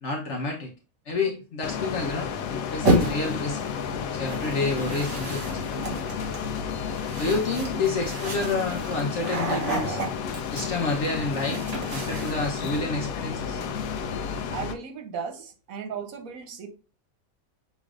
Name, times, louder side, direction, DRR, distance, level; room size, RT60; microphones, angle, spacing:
voice 1, 0.0-0.7 1.1-2.3 2.7-3.6 4.0-6.0 7.2-10.0 10.5-13.6, left 3 dB, 60° left, 1.1 m, -29 dB
sound 1, 1.6-14.8, left 7 dB, 80° left, 1.0 m, -32 dB
sound 2, 2.8-3.4 4.3-12.8, right 1 dB, 60° right, 1.8 m, -30 dB
voice 2, 14.5-16.7, right 6 dB, 80° right, 1.3 m, -36 dB
6.2 x 3.1 x 2.4 m
omnidirectional pair, 1.5 m